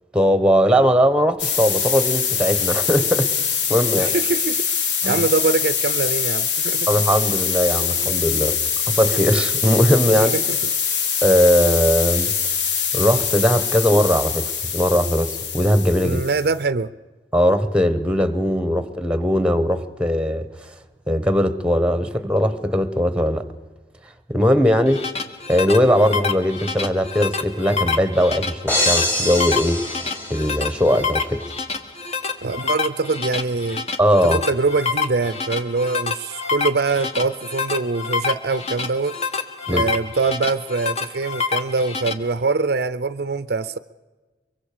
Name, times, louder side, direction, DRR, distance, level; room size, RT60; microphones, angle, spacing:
voice 1, 0.1-3.3 3.7-4.1 5.0-5.2 6.9-8.6 9.0-10.3 11.2-12.3 12.9-14.5 14.7-16.2 17.3-20.4 21.1-23.4 24.3-25.0 25.5-29.8 30.3-31.4 34.0-34.4 39.7-39.8, equal, 5° right, 12 dB, 1.1 m, -19 dB
sound 1, 1.4-16.6, left 7 dB, 80° left, 1.5 m, -23 dB
voice 2, 3.9-4.6 5.0-6.9 10.1-10.7 16.0-16.9 32.4-33.8 34.3-39.2 39.7-43.8, right 3 dB, 60° right, 14 dB, 0.6 m, -23 dB
sound 2, 24.7-42.1, left 5 dB, 35° left, 1.2 m, -27 dB
sound 3, 28.7-30.9, left 1 dB, 10° left, 1.8 m, -24 dB
23.5 x 23.5 x 5.0 m, 1.3 s
head